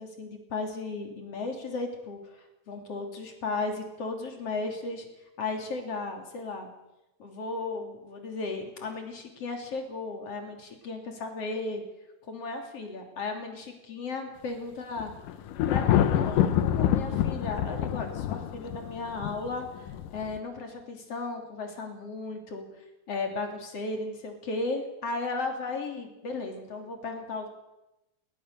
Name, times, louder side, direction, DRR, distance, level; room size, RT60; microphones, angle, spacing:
voice 1, 0.0-5.0 5.4-6.7 7.2-11.8 12.3-15.1 15.7-22.6 23.1-27.6, left 3 dB, 40° left, 4 dB, 3.4 m, -35 dB
Thunder, 15.0-20.4, left 11 dB, 90° left, 1.8 m, -26 dB
20.5 x 19.0 x 6.7 m, 0.95 s
omnidirectional pair, 5.1 m